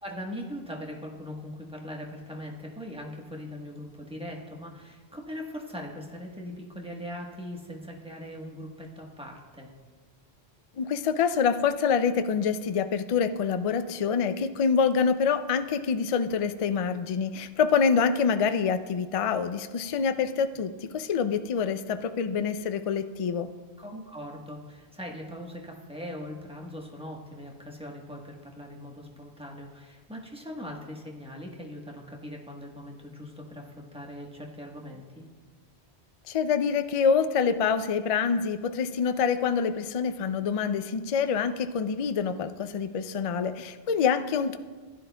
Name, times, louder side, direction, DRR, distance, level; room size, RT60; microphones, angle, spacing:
voice 1, 0.0-9.7 23.8-35.3, equal, 5° right, -1 dB, 1.1 m, -40 dB
voice 2, 10.8-23.5 36.3-44.6, left 6 dB, 60° left, 10 dB, 0.3 m, -26 dB
15.0 x 10.5 x 2.3 m, 1.4 s
omnidirectional pair, 1.1 m